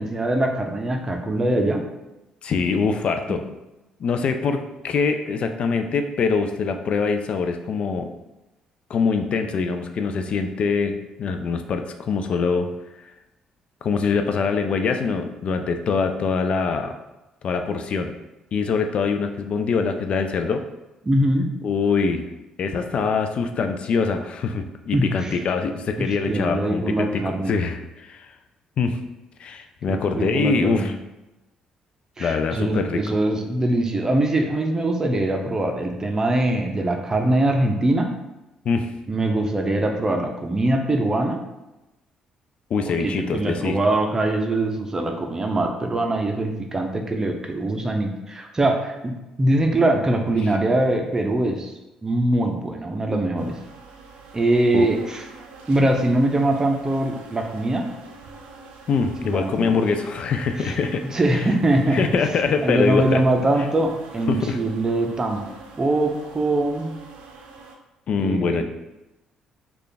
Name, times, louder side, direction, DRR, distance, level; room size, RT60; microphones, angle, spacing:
voice 1, 0.0-1.8 21.0-21.5 24.9-25.4 26.0-27.6 29.9-30.9 32.2-38.1 39.1-41.4 42.8-51.7 52.0-53.5 54.3-55.2 55.7-57.9 59.2-59.7 60.6-60.7 61.0-62.0 62.6-65.4 65.8-66.9 68.2-68.6, right 1 dB, 25° right, 4 dB, 0.6 m, -22 dB
voice 2, 2.4-3.4 4.0-8.1 8.9-12.7 13.8-16.9 17.4-18.1 18.5-20.6 21.6-22.2 22.6-27.2 27.5-28.3 28.8-29.0 29.4-30.9 32.2-33.0 38.7-38.9 42.7-43.8 54.7-54.9 58.9-61.0 61.3-61.4 61.9-63.2 64.3-64.6 68.1-68.6, left 5 dB, 55° left, 7 dB, 0.3 m, -23 dB
sound 1, 53.4-67.8, right 3 dB, 80° right, 0.5 m, -45 dB
3.2 x 2.4 x 3.9 m, 0.99 s
supercardioid pair, 65°, 2 cm